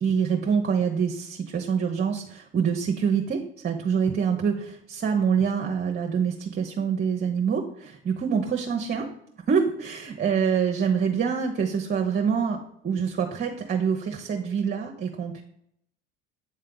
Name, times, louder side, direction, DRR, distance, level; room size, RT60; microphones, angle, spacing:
voice 1, 0.0-9.1 9.5-12.6 12.8-15.4, right 6 dB, 35° right, 2 dB, 0.8 m, -25 dB
8.2 x 3.3 x 3.9 m, 0.73 s
supercardioid pair, 80°, 30 cm